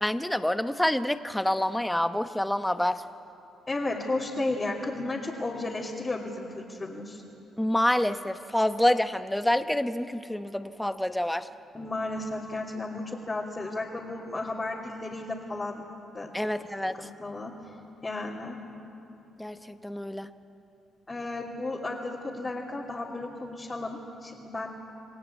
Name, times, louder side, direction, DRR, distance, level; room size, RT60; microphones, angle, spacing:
voice 1, 0.0-3.0 7.6-11.5 16.3-17.0 19.4-20.3, left 1 dB, 5° left, 10 dB, 1.0 m, -27 dB
voice 2, 3.7-7.2 11.7-15.8 16.1-16.3 16.9-17.7 18.0-18.6 21.1-24.7, left 2 dB, 25° left, -5 dB, 2.8 m, -33 dB
28.5 x 19.0 x 8.5 m, 2.9 s
cardioid pair, 90°, 0 cm